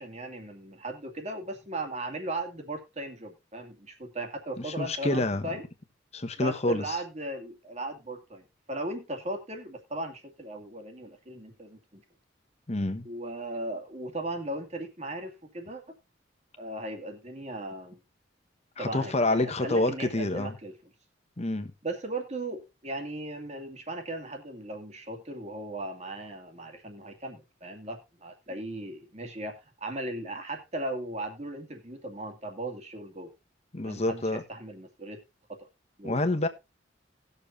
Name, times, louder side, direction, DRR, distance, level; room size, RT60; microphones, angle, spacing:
voice 1, 0.0-5.6 6.4-12.0 13.0-15.8 16.6-18.0 18.8-20.7 21.8-33.3 33.8-35.2 35.5-35.7 36.0-36.2, right 2 dB, 35° right, 2.3 m, -37 dB
voice 2, 4.6-5.5 6.1-7.0 12.7-13.1 18.8-20.6 21.4-21.7 33.7-34.4 36.0-36.5, left 2 dB, 35° left, 1.2 m, -28 dB
19.0 x 6.7 x 2.6 m
head